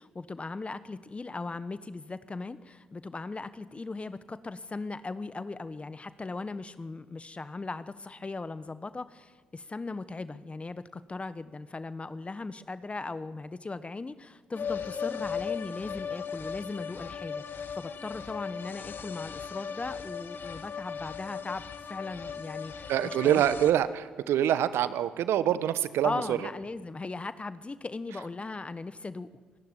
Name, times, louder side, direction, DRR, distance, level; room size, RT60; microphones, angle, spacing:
voice 1, 0.0-23.4 26.0-29.3, left 3 dB, 25° left, 14 dB, 1.2 m, -38 dB
sound 1, 14.5-23.7, left 6 dB, 50° left, 2.3 m, -37 dB
voice 2, 22.9-26.4, right 11 dB, 65° right, 14 dB, 1.2 m, -25 dB
25.5 x 19.0 x 9.9 m, 1.5 s
hypercardioid pair, 45°, 4 cm